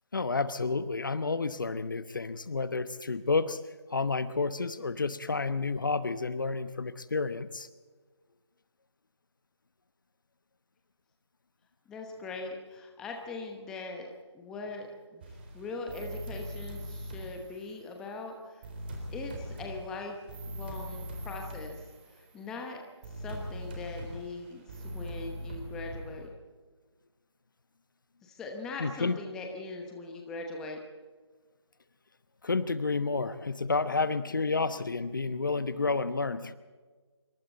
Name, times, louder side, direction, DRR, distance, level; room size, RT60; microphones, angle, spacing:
voice 1, 0.1-3.6 3.9-7.7 28.8-29.2 32.4-36.5, left 4 dB, 45° left, 13 dB, 1.1 m, -30 dB
voice 2, 11.9-15.2 15.5-18.6 19.1-20.1 20.5-21.8 22.1-22.8 23.2-26.3 28.2-30.8, left 3 dB, 5° left, 2 dB, 1.1 m, -41 dB
sound 1, 15.2-17.9 18.6-22.6 23.0-26.3, equal, 20° right, 3.9 m, -41 dB
26.5 x 24.5 x 4.1 m, 1.4 s
figure-of-eight pair, 165°, 15 cm